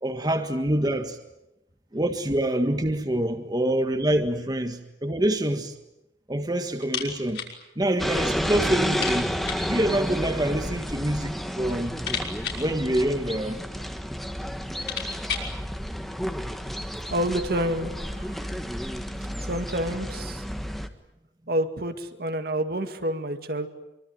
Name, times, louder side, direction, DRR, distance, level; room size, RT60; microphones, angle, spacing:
voice 1, 0.0-1.2 1.9-5.7 6.3-7.4 7.7-9.4 9.6-12.0 12.5-13.6 19.1-19.3, right 1 dB, 20° right, 1.6 m, -26 dB
sound 1, 6.8-7.6 7.8-7.9 8.3-8.4 8.9-9.7 10.7-11.3 11.6-13.6 14.3-14.4 14.6-15.6, left 7 dB, 65° left, 5.8 m, -35 dB
sound 2, 8.0-20.9, equal, ahead, 1.6 m, -31 dB
voice 2, 17.1-18.4 19.5-20.4 21.5-23.7, right 1 dB, 60° right, 2.2 m, -28 dB
25.5 x 24.5 x 9.4 m
head